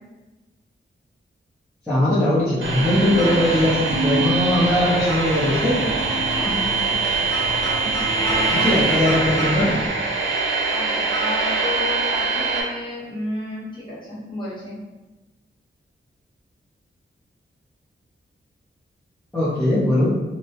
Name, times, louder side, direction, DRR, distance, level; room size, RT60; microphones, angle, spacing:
voice 1, 1.9-5.9 8.6-9.7 19.3-20.1, left 1 dB, 5° left, -13 dB, 0.7 m, -20 dB
sound 1, 2.6-9.9, equal, 70° left, 0.9 m, -31 dB
sound 2, 2.6-12.6, right 4 dB, 75° right, 0.5 m, -23 dB
voice 2, 6.3-6.9 8.2-8.8 10.7-14.8, left 2 dB, 25° left, -9 dB, 1.0 m, -31 dB
2.2 x 2.0 x 2.8 m, 1.1 s
wide cardioid pair, 115°, 20 cm